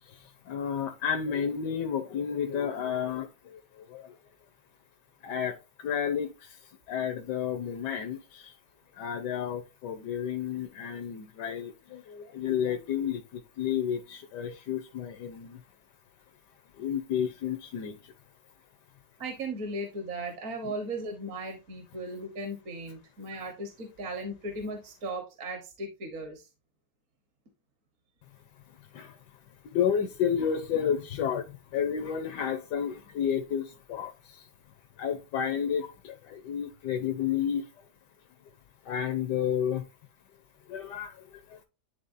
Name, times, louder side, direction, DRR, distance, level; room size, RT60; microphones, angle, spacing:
voice 1, 0.0-4.2 5.2-8.6 8.9-15.6 16.8-18.1 20.6-20.7 28.9-29.2 29.6-34.5 35.0-37.9 38.8-39.9 40.7-41.6, left 8 dB, 80° left, 1.4 m, -31 dB
voice 2, 19.2-26.5, right 1 dB, 55° right, 1.4 m, -37 dB
11.0 x 3.6 x 2.6 m
omnidirectional pair, 1.8 m